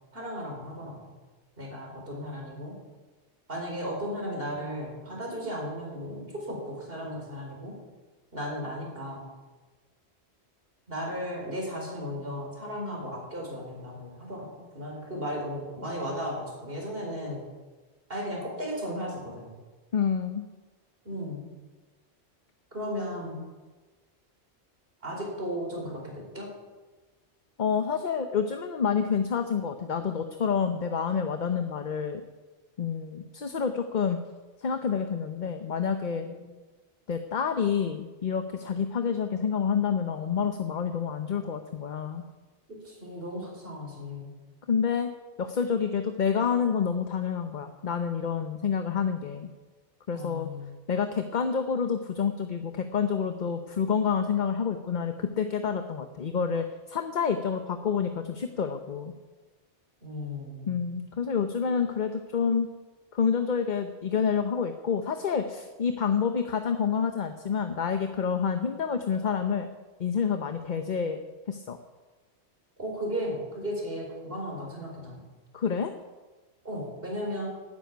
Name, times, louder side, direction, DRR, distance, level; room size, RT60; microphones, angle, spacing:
voice 1, 0.1-1.0 1.6-2.7 3.5-7.7 8.3-9.2 10.9-17.4 18.1-19.5 21.0-21.4 22.7-23.4 25.0-26.5 36.2-36.4 42.7-44.3 50.1-50.7 60.0-60.8 72.8-75.2 76.6-77.5, equal, 55° right, -1 dB, 4.8 m, -35 dB
voice 2, 19.9-20.4 27.6-32.2 32.8-34.2 34.6-36.3 37.1-42.2 44.7-45.1 45.4-49.5 50.1-50.5 50.9-59.1 60.7-62.7 63.1-69.7 70.0-71.2 71.5-71.8 75.5-75.9, left 6 dB, 45° left, 7 dB, 0.9 m, -28 dB
12.5 x 9.8 x 9.3 m, 1.3 s
omnidirectional pair, 1.1 m